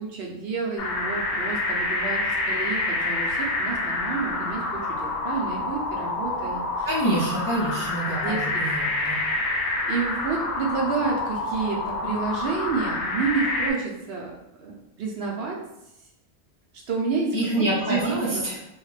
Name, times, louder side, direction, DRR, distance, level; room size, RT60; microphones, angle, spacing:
voice 1, 0.0-6.9 8.1-8.4 9.8-14.3 14.6-15.6 16.9-18.4, right 5 dB, 65° right, -2 dB, 0.8 m, -29 dB
sound 1, 0.8-13.7, left 2 dB, 65° left, 0.7 m, -27 dB
voice 2, 6.8-9.2 17.3-18.6, right 1 dB, 30° left, -7 dB, 0.4 m, -26 dB
2.3 x 2.1 x 3.1 m, 0.87 s
omnidirectional pair, 1.1 m